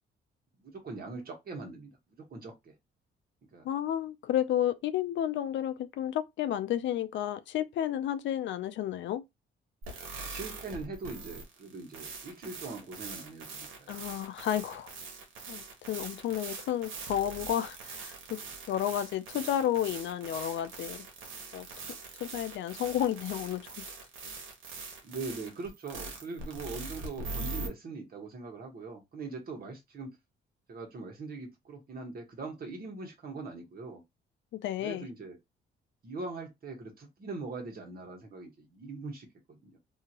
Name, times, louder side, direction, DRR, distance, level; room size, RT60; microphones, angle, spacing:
voice 1, 0.6-1.9 2.3-2.7 3.5-3.7 10.2-14.2 25.0-30.1 30.7-34.0 34.8-35.4 36.0-39.8, right 3 dB, 50° right, 1.3 m, -41 dB
voice 2, 3.6-9.2 13.9-14.9 15.5-18.4 18.7-21.1 21.5-21.7 22.2-23.9 34.5-35.1, left 11 dB, 70° left, 0.4 m, -32 dB
sound 1, 9.8-27.7, right 3 dB, 90° right, 1.0 m, -42 dB
2.8 x 2.5 x 2.9 m
cardioid pair, 90°, 20 cm